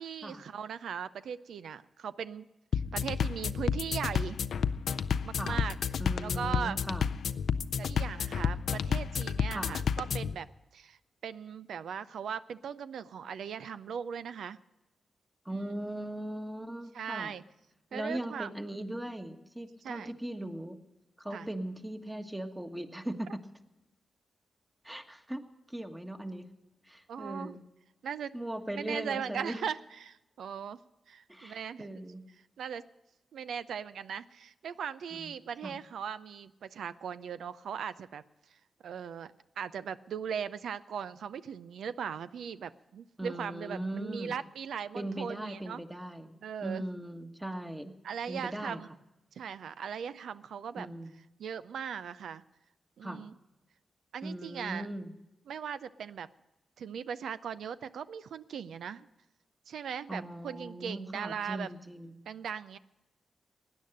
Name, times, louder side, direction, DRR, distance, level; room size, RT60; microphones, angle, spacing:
voice 1, 0.0-2.5 2.7-4.4 5.2-5.7 6.2-6.8 7.8-10.5 10.7-11.0 11.2-14.6 15.5-15.7 16.9-17.4 17.9-18.5 19.8-20.1 21.3-21.5 27.1-27.5 28.0-28.3 28.7-30.8 31.1-31.9 32.6-32.8 33.3-38.2 38.8-45.8 46.4-46.8 48.0-48.9 49.4-50.9 51.4-52.4 53.0-53.3 54.1-54.9 55.5-56.3 56.8-59.1 59.7-61.7 62.3-62.8, right 7 dB, 80° right, 14 dB, 0.4 m, -39 dB
sound 1, 2.7-10.3, left 7 dB, 75° left, 0.4 m, -31 dB
voice 2, 6.0-7.1 9.5-9.8 15.4-17.3 17.9-20.8 21.2-23.4 24.8-26.4 26.8-27.6 28.3-29.6 31.3-32.2 35.1-35.3 35.6-35.8 43.2-44.4 44.9-46.3 46.6-47.9 48.3-48.8 50.8-51.1 53.0-53.2 54.2-55.1 60.1-62.1, right 1 dB, 15° right, 6 dB, 1.5 m, -39 dB
16.5 x 9.8 x 6.6 m, 0.97 s
supercardioid pair, 45°, 0 cm